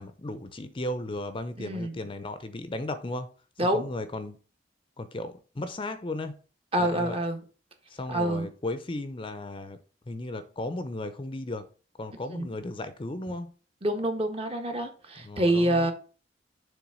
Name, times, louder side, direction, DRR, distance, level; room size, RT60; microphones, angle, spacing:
voice 1, 0.0-3.3 3.6-4.4 5.0-6.4 6.8-7.2 7.9-9.8 10.1-11.7 12.0-13.5 15.2-15.9, left 2 dB, 30° left, 0.6 m, -35 dB
voice 2, 1.6-2.0 3.6-3.9 6.7-7.4 8.1-8.5 12.3-12.5 13.8-15.9, right 1 dB, 35° right, 1.3 m, -26 dB
7.1 x 3.4 x 6.1 m
head